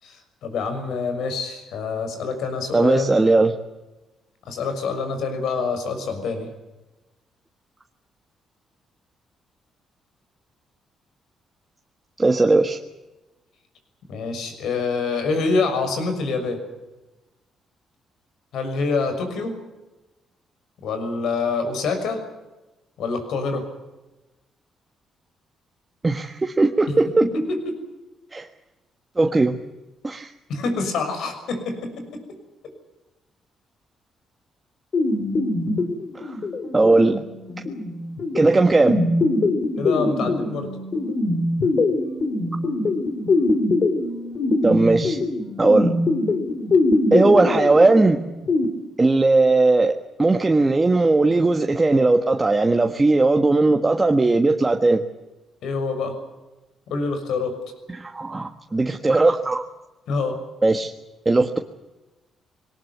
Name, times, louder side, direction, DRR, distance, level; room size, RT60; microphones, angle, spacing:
voice 1, 0.0-3.2 4.4-6.5 14.1-16.6 18.5-19.6 20.8-22.2 23.0-23.6 27.2-27.4 30.5-32.0 39.8-40.7 55.6-56.1 56.9-57.5 60.1-60.4, left 4 dB, 75° left, 8 dB, 6.3 m, -26 dB
voice 2, 2.7-3.5 12.2-12.8 26.0-27.2 28.3-28.5 29.2-29.6 30.0-30.3 36.1-36.4 36.7-37.2 38.3-39.0 44.6-45.2 45.6-46.0 47.1-48.2 49.0-49.9 50.2-55.0 57.9-59.7 60.6-60.9 61.2-61.6, right 2 dB, 20° right, 4 dB, 1.5 m, -18 dB
sound 1, 34.9-48.7, left 2 dB, 45° left, 3.4 m, -23 dB
22.0 x 18.5 x 9.4 m, 1.1 s
cardioid pair, 90°, 0 cm